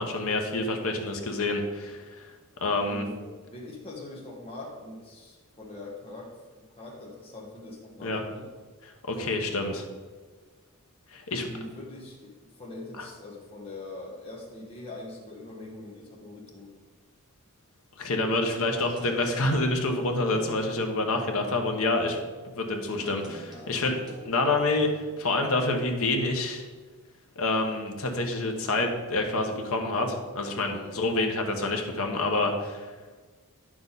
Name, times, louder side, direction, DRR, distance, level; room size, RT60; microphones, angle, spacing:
voice 1, 0.0-2.3 2.6-3.0 8.0-8.2 9.1-9.9 11.1-11.5 13.0-13.1 18.0-22.2 22.5-24.0 24.3-26.6 27.4-32.9, left 2 dB, 70° left, 3 dB, 1.2 m, -27 dB
voice 2, 2.9-8.5 11.5-16.7 23.9-24.2 30.7-31.0, left 2 dB, 25° left, -4 dB, 1.3 m, -43 dB
sound 1, 18.8-21.0 23.0-25.2, equal, 20° right, 1.3 m, -46 dB
9.6 x 6.2 x 4.1 m, 1.4 s
head